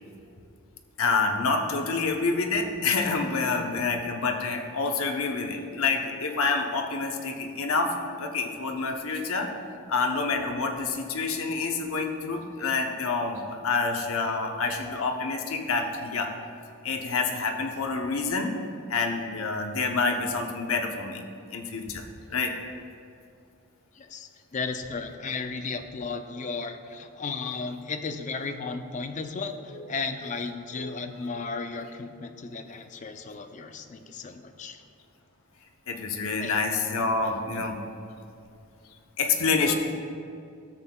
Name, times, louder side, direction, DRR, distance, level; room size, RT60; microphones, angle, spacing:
voice 1, 1.0-9.5 9.9-16.3 16.8-18.5 18.9-21.2 21.5-22.0 22.3-22.5 29.7-29.8 30.7-31.0 35.9-37.8 39.2-39.7, left 4 dB, 70° left, 3 dB, 0.8 m, -27 dB
voice 2, 24.0-34.8 36.4-36.5, left 4 dB, 35° left, 7 dB, 0.4 m, -35 dB
13.0 x 7.5 x 2.3 m, 2.5 s
head